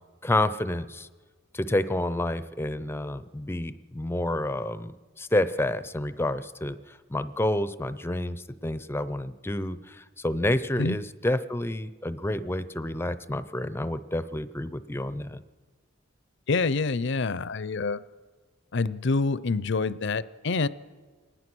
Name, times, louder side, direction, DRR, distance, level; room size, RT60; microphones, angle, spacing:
voice 1, 0.2-1.1 1.5-4.9 5.2-6.8 7.1-15.4, left 1 dB, 10° left, 14 dB, 0.5 m, -29 dB
voice 2, 16.5-18.0 18.7-20.7, left 3 dB, 60° left, 17 dB, 0.6 m, -26 dB
23.5 x 19.0 x 6.2 m, 1.5 s
head